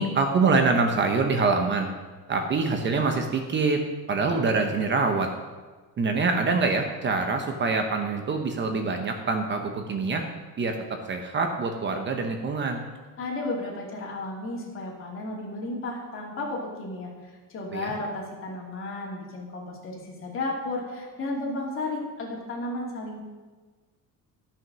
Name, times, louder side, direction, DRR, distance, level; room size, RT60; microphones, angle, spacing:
voice 1, 0.0-1.9 2.3-5.3 6.0-10.2 10.6-12.8 17.7-17.9, right 4 dB, 30° right, 5 dB, 0.9 m, -25 dB
voice 2, 13.2-23.2, left 2 dB, 35° left, -2 dB, 2.7 m, -33 dB
13.0 x 6.3 x 6.1 m, 1.3 s
cardioid pair, 155°, 35 cm